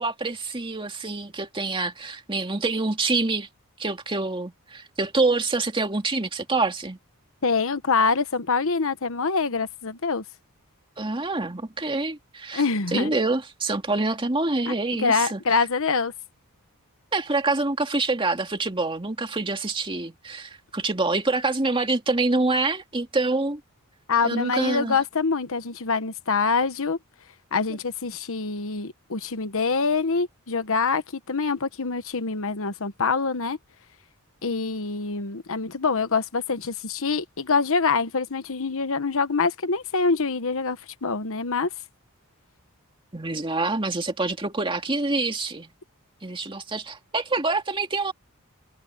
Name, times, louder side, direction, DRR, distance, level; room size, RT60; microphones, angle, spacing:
voice 1, 0.0-3.5 3.8-7.0 11.0-12.6 12.9-15.6 17.1-23.6 24.2-25.0 43.1-45.7 46.2-48.1, right 3 dB, 25° right, 2.3 m, -26 dB
voice 2, 7.4-10.2 12.5-13.1 14.7-16.1 24.1-27.0 27.5-31.0 31.3-33.6 34.4-41.7, left 4 dB, 65° left, 1.1 m, -25 dB
head